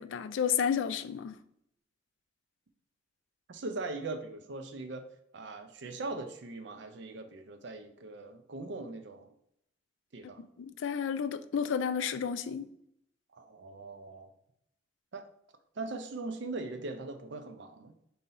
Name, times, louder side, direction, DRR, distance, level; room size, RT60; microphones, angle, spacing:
voice 1, 0.0-1.4 10.6-12.7, left 7 dB, 85° left, 0.3 m, -31 dB
voice 2, 3.5-5.1 5.3-9.3 10.1-10.4 13.3-14.3 15.1-15.3 15.8-17.9, right 3 dB, 65° right, 0.5 m, -40 dB
3.8 x 2.7 x 4.1 m
head